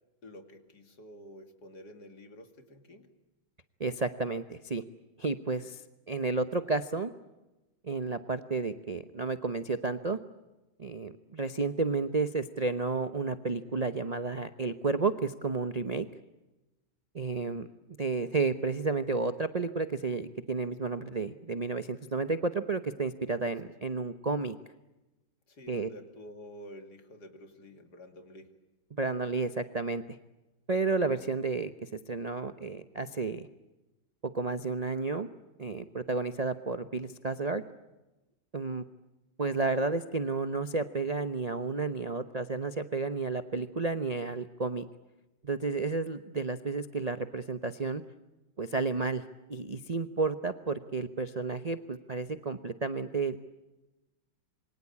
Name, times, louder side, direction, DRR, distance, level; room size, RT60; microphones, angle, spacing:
voice 1, 0.2-3.1 25.5-28.5, equal, 50° left, 7 dB, 3.0 m, -49 dB
voice 2, 3.8-4.8 5.2-5.8 6.1-7.1 7.8-10.2 10.8-16.1 17.1-24.6 25.7-25.9 28.9-30.0 30.7-33.5 34.3-35.3 35.6-37.6 38.5-38.8 39.4-44.9 45.4-48.0 48.6-49.2 49.5-53.4, right 3 dB, 50° right, 10 dB, 0.4 m, -31 dB
27.0 x 24.0 x 8.5 m, 1.0 s
omnidirectional pair, 2.2 m